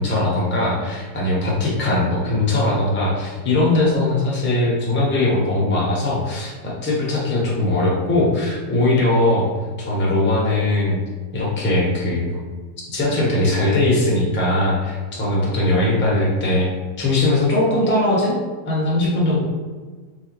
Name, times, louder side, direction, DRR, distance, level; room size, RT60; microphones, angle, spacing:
voice 1, 0.0-9.5 9.8-11.0 11.3-12.3 12.9-16.7 17.0-18.4 18.7-19.4, left 2 dB, 15° left, -5 dB, 0.4 m, -20 dB
3.4 x 3.3 x 3.0 m, 1.4 s
omnidirectional pair, 2.0 m